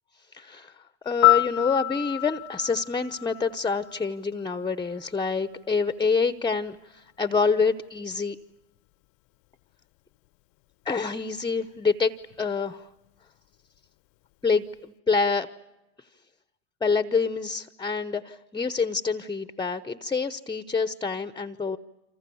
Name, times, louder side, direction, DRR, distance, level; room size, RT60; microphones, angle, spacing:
voice 1, 0.3-0.7 1.0-8.4 10.8-12.1 12.4-12.8 14.4-15.5 16.8-21.8, left 4 dB, 10° left, 13 dB, 0.9 m, -27 dB
Piano, 1.2-4.2 12.3-12.5, left 24 dB, 65° left, 1.0 m, -26 dB
28.5 x 26.5 x 7.0 m, 1.0 s
supercardioid pair, 100°, 46 cm